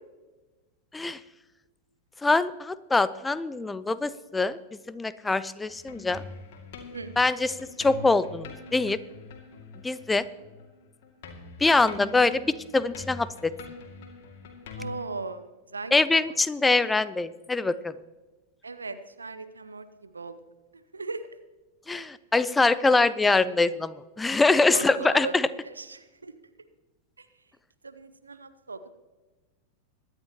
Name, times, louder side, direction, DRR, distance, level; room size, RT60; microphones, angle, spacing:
voice 1, 2.2-4.6 4.9-6.2 7.2-9.0 9.8-10.2 11.6-13.5 15.9-17.9 21.9-25.5, left 3 dB, 10° left, 16 dB, 0.5 m, -24 dB
sound 1, 5.7-10.7 11.0-15.0, left 4 dB, 50° left, 2.2 m, -44 dB
voice 2, 6.9-7.3 14.8-16.4 18.6-20.4 20.7-21.2 24.7-25.3 25.6-26.3 27.2-27.3 27.8-28.8, right 3 dB, 75° right, 11 dB, 0.7 m, -38 dB
23.0 x 9.9 x 2.9 m, 1.2 s
figure-of-eight pair, 90°, 0 cm